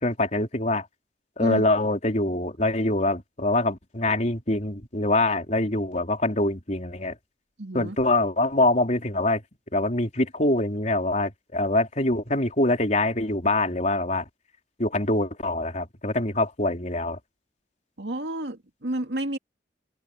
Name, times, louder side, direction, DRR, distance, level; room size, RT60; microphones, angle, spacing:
voice 1, 0.0-0.9 1.4-7.2 7.7-9.4 9.7-14.2 14.8-17.2, left 2 dB, 40° left, 4.0 m, -24 dB
voice 2, 7.6-8.0 18.0-19.4, right 1 dB, 75° right, 2.5 m, -30 dB
head